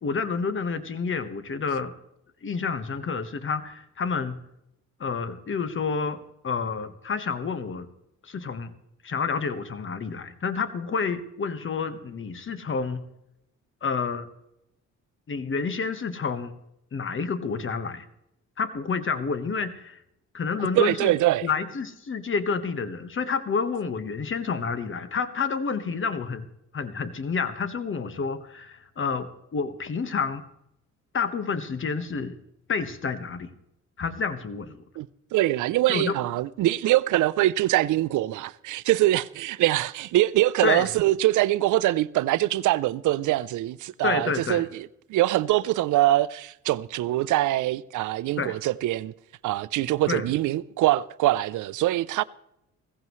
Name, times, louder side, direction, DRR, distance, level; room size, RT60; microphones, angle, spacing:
voice 1, 0.0-1.9 2.4-4.4 5.0-6.2 6.4-7.9 8.2-8.7 9.0-13.0 13.8-14.3 15.3-16.5 16.9-18.0 18.6-20.0 20.3-21.1 21.4-26.5 26.7-30.4 31.1-32.3 32.7-33.5 34.0-34.8 35.9-36.1 40.6-40.9 44.0-44.6 48.4-48.6 50.1-50.3, left 5 dB, 40° left, 1.4 m, -29 dB
voice 2, 20.7-21.5 35.0-35.1 35.3-49.1 49.4-52.2, right 15 dB, 80° right, 0.6 m, -23 dB
16.5 x 15.5 x 3.1 m
cardioid pair, 90°, 30 cm